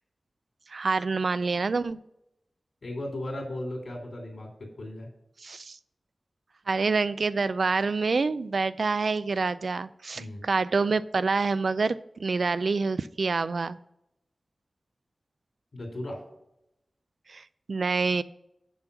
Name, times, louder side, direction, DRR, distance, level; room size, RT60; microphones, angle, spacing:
voice 1, 0.7-2.0 5.4-5.8 6.7-13.8 17.3-18.2, right 4 dB, 70° right, 15 dB, 0.4 m, -27 dB
voice 2, 2.8-4.5 4.8-5.1 10.1-10.5 15.7-16.2, left 1 dB, 65° left, 1 dB, 3.1 m, -36 dB
7.0 x 6.2 x 6.8 m, 0.83 s
wide cardioid pair, 100°, 0 cm